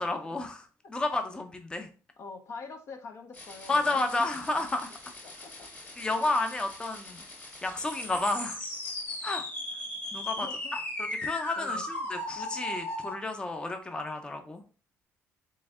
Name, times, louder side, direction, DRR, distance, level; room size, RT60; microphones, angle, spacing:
voice 1, 0.0-1.9 3.7-4.9 6.0-7.2 7.6-8.6 9.2-9.4 10.1-10.5 10.7-14.6, left 2 dB, 15° left, 6 dB, 0.6 m, -31 dB
voice 2, 2.2-4.1 5.2-5.7 6.3-6.4 10.4-10.8 11.6-11.9, left 4 dB, 55° left, 6 dB, 0.7 m, -44 dB
sound 1, 3.3-13.1, left 2 dB, 35° left, 1.8 m, -38 dB
3.5 x 3.2 x 3.5 m, 0.36 s
cardioid pair, 100°, 6 cm